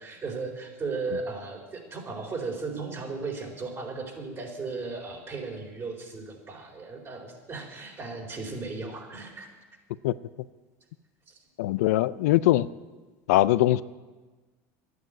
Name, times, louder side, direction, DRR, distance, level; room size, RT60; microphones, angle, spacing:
voice 1, 0.0-9.5 11.3-11.4, right 4 dB, 30° right, 1 dB, 4.3 m, -36 dB
voice 2, 11.6-12.7 13.3-13.8, left 15 dB, 80° left, 16 dB, 0.4 m, -21 dB
12.0 x 9.5 x 9.0 m, 1.3 s
hypercardioid pair, 95°, 8 cm